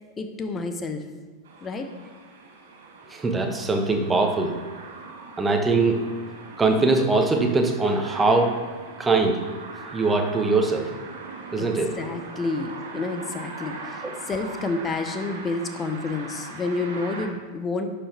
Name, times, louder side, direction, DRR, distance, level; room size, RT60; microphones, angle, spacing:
voice 1, 0.2-1.0 1.6-1.9 11.6-11.7 12.0-17.9, left 3 dB, 20° left, 7 dB, 1.0 m, -29 dB
sound 1, 1.4-17.3, right 3 dB, 60° right, 1.5 m, -40 dB
voice 2, 3.1-4.6 5.4-6.0 6.6-8.5 9.0-9.4 9.9-10.9 11.5-11.9, right 3 dB, 15° right, 3 dB, 1.3 m, -21 dB
11.5 x 6.9 x 3.5 m, 1.4 s
figure-of-eight pair, 90°, 0 cm